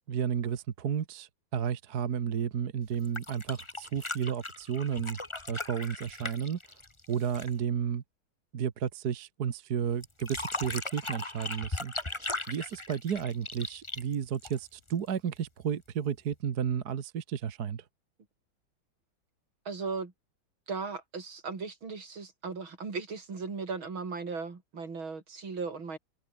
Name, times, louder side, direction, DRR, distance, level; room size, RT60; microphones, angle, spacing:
voice 1, 0.1-5.2 5.5-6.6 7.1-8.0 8.5-17.8, right 8 dB, 55° right, 1.8 m, -32 dB
sound 1, 2.9-7.6 10.0-14.9 16.3-16.4, left 2 dB, 15° left, 1.8 m, -38 dB
voice 2, 19.7-20.1 20.7-26.0, right 4 dB, 75° right, 4.4 m, -37 dB
omnidirectional pair, 2.2 m